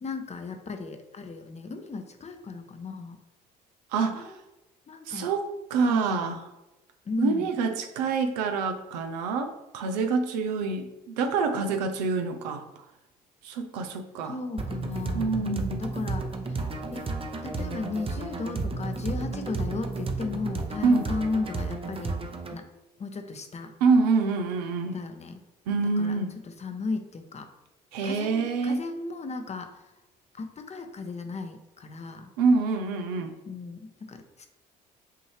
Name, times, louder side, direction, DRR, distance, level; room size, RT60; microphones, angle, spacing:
voice 1, 0.0-3.2 4.1-4.2 4.9-5.3 5.9-6.4 7.1-7.5 14.3-16.6 16.9-17.1 17.4-22.1 22.5-22.7 23.0-23.7 24.9-25.4 26.0-26.2 26.6-27.5 28.0-29.8 30.3-32.3 33.5-34.5, left 4 dB, 35° left, 6 dB, 0.7 m, -35 dB
voice 2, 3.9-4.3 5.1-6.4 7.2-12.7 13.4-14.4 15.1-15.8 20.8-21.1 23.8-25.0 25.7-26.3 27.9-28.8 32.4-33.3, right 4 dB, 85° right, 6 dB, 0.5 m, -26 dB
sound 1, 14.6-22.6, right 3 dB, 25° right, 0.7 m, -32 dB
5.8 x 2.7 x 3.2 m, 0.97 s
hypercardioid pair, 55°, 21 cm